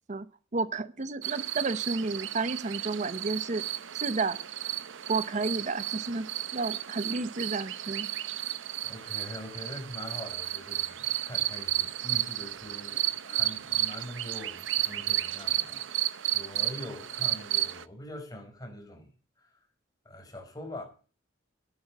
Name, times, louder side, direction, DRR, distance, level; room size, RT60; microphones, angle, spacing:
voice 1, 0.5-3.6 3.9-4.4 5.1-6.3 6.5-8.1, right 3 dB, 40° right, 0.8 m, -31 dB
sound 1, 1.2-17.8, right 14 dB, 75° right, 0.7 m, -33 dB
voice 2, 8.8-19.1 19.4-19.6 20.0-20.8, left 1 dB, 20° left, 5.0 m, -43 dB
11.0 x 9.7 x 7.5 m
head